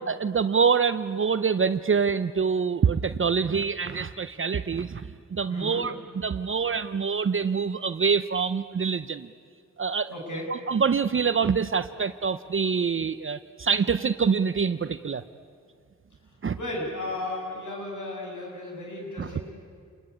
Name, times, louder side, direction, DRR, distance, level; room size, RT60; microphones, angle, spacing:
voice 1, 0.1-9.3 9.8-10.1 10.5-15.2 16.4-16.6 19.2-19.3, right 6 dB, 40° right, 12 dB, 0.7 m, -25 dB
voice 2, 5.5-5.8 10.1-10.5 16.5-19.5, left 1 dB, 70° left, -1 dB, 7.8 m, -34 dB
29.0 x 21.0 x 9.8 m, 2.1 s
wide cardioid pair, 95°, 31 cm